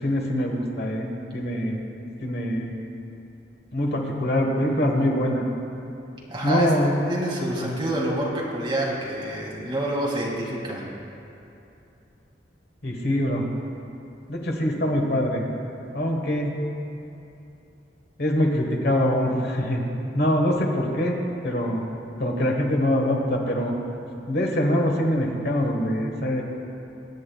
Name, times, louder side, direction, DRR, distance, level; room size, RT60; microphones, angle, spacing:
voice 1, 0.0-1.8 2.2-2.7 3.7-5.4 6.4-7.0 7.6-7.7 12.8-13.4 14.3-15.4 15.9-16.6 18.2-19.8 20.1-21.2 21.4-21.8 22.2-23.7 24.3-26.4, left 1 dB, 60° left, 1 dB, 1.3 m, -24 dB
voice 2, 6.3-10.8, right 1 dB, 25° right, -4 dB, 2.3 m, -27 dB
22.5 x 9.7 x 2.3 m, 2.8 s
head